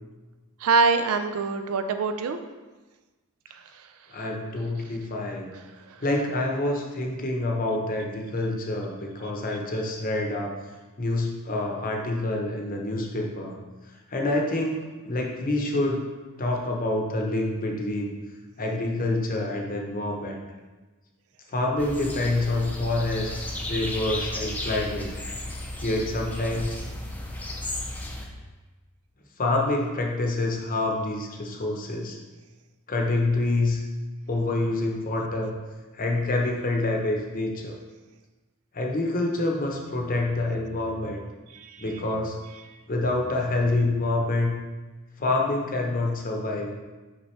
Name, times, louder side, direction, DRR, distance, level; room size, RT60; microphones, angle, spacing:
voice 1, 0.6-2.4 41.5-41.8, right 4 dB, 70° right, 7 dB, 0.4 m, -24 dB
voice 2, 4.1-5.5 6.0-10.5 11.0-13.6 14.1-16.0 16.4-18.1 18.6-20.4 21.5-23.3 23.7-25.1 25.8-26.7 29.4-32.2 32.9-33.8 34.3-35.5 35.9-37.7 38.7-41.2 41.8-42.4 42.9-44.5 45.2-46.7, left 2 dB, 40° left, 1 dB, 0.8 m, -27 dB
sound 1, 21.8-28.3, left 1 dB, 10° left, 0.6 m, -34 dB
6.0 x 5.2 x 3.2 m, 1.2 s
head